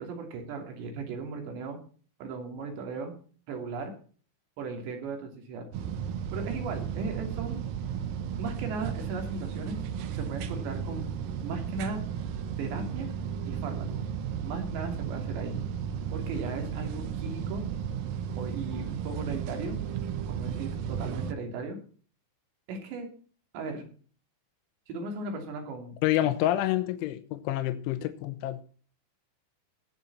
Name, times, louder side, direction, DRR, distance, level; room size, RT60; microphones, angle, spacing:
voice 1, 0.0-1.8 2.2-3.2 3.5-3.9 4.6-5.7 6.3-7.6 8.4-9.8 10.1-11.1 11.4-12.0 12.6-13.1 13.5-14.1 14.4-15.6 16.1-17.7 18.4-19.8 20.3-21.8 22.7-23.1 23.5-23.8 24.9-26.0, right 4 dB, 65° right, 4 dB, 4.9 m, -37 dB
sound 1, 5.7-21.3, right 8 dB, 80° right, 2.0 m, -34 dB
voice 2, 26.0-28.6, left 14 dB, 80° left, 9 dB, 3.3 m, -28 dB
18.5 x 7.4 x 4.1 m, 0.42 s
omnidirectional pair, 5.6 m